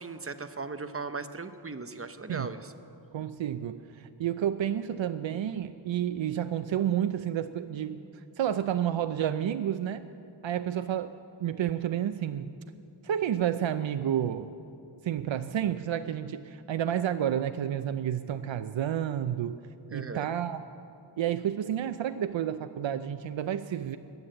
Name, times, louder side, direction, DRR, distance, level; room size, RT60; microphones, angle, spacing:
voice 1, 0.0-2.7 19.9-20.3, right 4 dB, 30° right, 9 dB, 0.8 m, -38 dB
voice 2, 3.1-8.0 8.4-10.0 10.4-11.1 11.4-12.5 13.0-14.5 15.0-19.6 19.9-20.6 21.2-24.0, right 10 dB, 85° right, 10 dB, 0.6 m, -30 dB
20.0 x 8.7 x 7.9 m, 2.6 s
wide cardioid pair, 105°, 44 cm